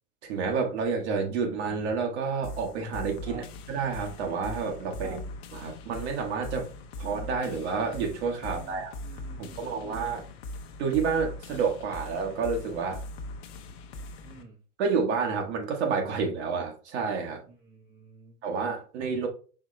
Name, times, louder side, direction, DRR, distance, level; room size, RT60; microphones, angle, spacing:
voice 1, 0.2-5.2 5.5-6.7 7.0-8.9 9.4-10.2 10.8-13.0 14.8-17.4 18.4-19.3, right 5 dB, 65° right, 2 dB, 1.2 m, -29 dB
sound 1, 2.4-14.4, left 2 dB, 55° left, 0.8 m, -41 dB
voice 2, 8.4-10.2 14.2-14.6 17.4-18.4, right 4 dB, 25° right, 0 dB, 0.7 m, -49 dB
4.7 x 3.2 x 3.1 m, 0.38 s
hypercardioid pair, 95°, 36 cm